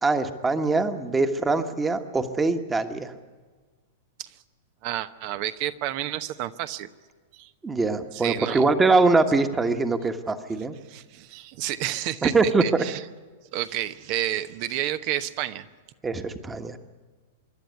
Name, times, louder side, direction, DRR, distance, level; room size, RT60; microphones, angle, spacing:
voice 1, 0.0-3.1 7.6-10.7 12.2-12.6 16.0-16.8, right 3 dB, 15° right, 7 dB, 1.5 m, -23 dB
voice 2, 4.8-6.9 7.3-7.5 8.1-8.7 10.8-13.1 13.5-15.7, right 13 dB, 50° right, 12 dB, 1.0 m, -30 dB
26.0 x 11.5 x 9.5 m, 1.4 s
hypercardioid pair, 105°, 0 cm